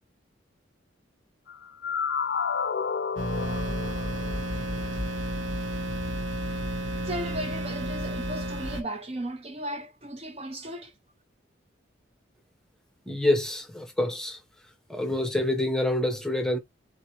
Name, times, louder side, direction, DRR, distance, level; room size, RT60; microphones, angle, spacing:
sound 1, 1.5-5.0, left 6 dB, 55° left, 0.3 m, -31 dB
sound 2, 3.2-8.8, right 1 dB, 75° right, 1.2 m, -31 dB
voice 1, 7.0-10.9, right 1 dB, 30° right, 0.5 m, -35 dB
voice 2, 13.1-14.4 14.9-16.6, left 1 dB, 5° left, 0.8 m, -26 dB
7.3 x 2.6 x 2.8 m
head